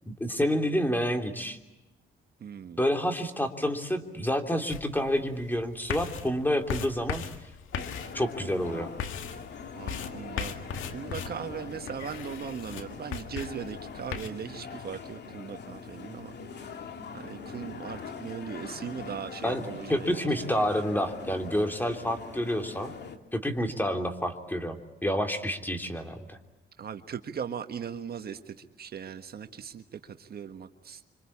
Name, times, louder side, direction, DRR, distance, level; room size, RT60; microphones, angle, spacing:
voice 1, 0.1-1.6 2.8-7.2 8.1-8.9 19.4-19.6 19.9-23.0 23.3-26.4, equal, 10° left, 5 dB, 3.2 m, -29 dB
voice 2, 2.4-2.8 9.8-10.6 10.9-16.4 16.6-16.8 17.1-20.6 26.8-31.0, right 7 dB, 50° right, 7 dB, 1.5 m, -39 dB
sound 1, 4.7-14.3, left 7 dB, 85° left, 2.0 m, -38 dB
sound 2, 7.7-23.2, left 5 dB, 60° left, 2.7 m, -42 dB
26.0 x 26.0 x 8.6 m, 0.98 s
cardioid pair, 90°, 20 cm